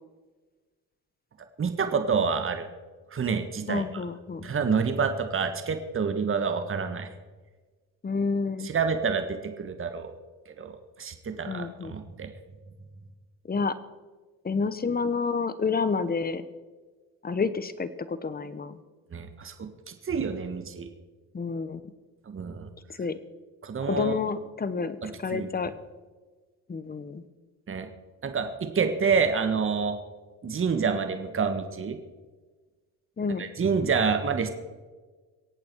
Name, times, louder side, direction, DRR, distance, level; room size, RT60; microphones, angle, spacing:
voice 1, 1.6-2.7 3.1-3.8 4.4-7.1 8.6-10.1 10.6-10.7 11.0-12.3 19.1-20.9 22.3-22.7 23.6-24.2 25.0-25.5 27.7-27.9 28.2-30.0 30.4-32.0 33.4-34.5, right 5 dB, 30° right, 7 dB, 1.6 m, -28 dB
voice 2, 3.7-4.5 8.0-8.7 11.5-11.9 13.4-13.7 14.4-16.4 17.2-18.8 21.3-21.8 22.9-23.2 23.8-25.7 26.7-27.2 33.2-33.5, left 4 dB, 20° left, 14 dB, 1.1 m, -29 dB
24.0 x 8.6 x 4.7 m, 1.3 s
supercardioid pair, 75°, 42 cm